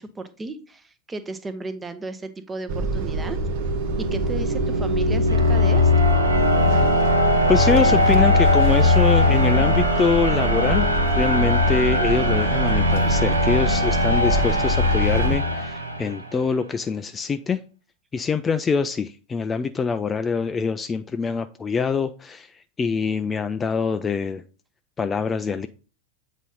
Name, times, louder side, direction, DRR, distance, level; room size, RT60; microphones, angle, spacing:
voice 1, 0.0-3.4 4.1-5.9, right 3 dB, 15° right, 0.8 m, -34 dB
sound 1, 2.7-15.4, right 4 dB, 45° right, 0.9 m, -27 dB
sound 2, 3.4-16.3, left 2 dB, 80° right, 1.1 m, -20 dB
voice 2, 7.5-10.9 11.2-17.6 18.1-24.4 25.0-25.7, left 5 dB, 20° left, 0.4 m, -24 dB
8.2 x 4.1 x 3.7 m
figure-of-eight pair, 90°, 0 cm